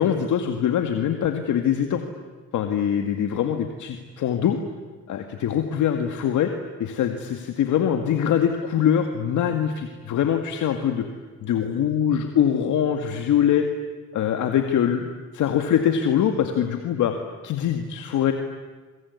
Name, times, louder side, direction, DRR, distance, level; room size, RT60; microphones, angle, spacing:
voice 1, 0.0-2.0 2.5-4.6 5.1-6.5 6.8-11.0 11.4-13.7 14.1-15.1 15.3-17.1 17.4-18.3, left 9 dB, 75° left, 5 dB, 2.0 m, -23 dB
26.5 x 23.5 x 9.5 m, 1.4 s
cardioid pair, 90°, 30 cm